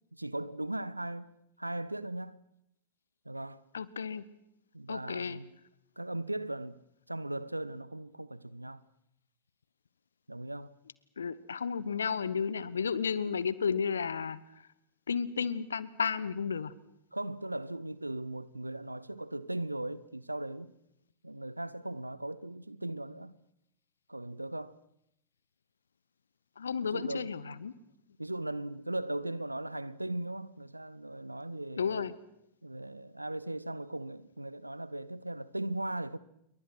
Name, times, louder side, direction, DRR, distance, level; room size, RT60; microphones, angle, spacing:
voice 1, 0.1-1.3 1.6-2.4 3.2-3.6 4.7-5.5 6.0-6.8 7.1-8.8 10.3-10.7 17.1-20.7 21.2-23.3 24.1-24.8 26.8-27.6 28.2-32.1 32.6-36.2, right 1 dB, 85° right, 0.9 m, -38 dB
voice 2, 3.7-4.2 4.9-5.4 11.2-14.4 15.1-16.7 26.6-27.7 31.8-32.1, left 6 dB, 70° left, 1.1 m, -32 dB
28.0 x 23.0 x 6.1 m
figure-of-eight pair, 90°, 0 cm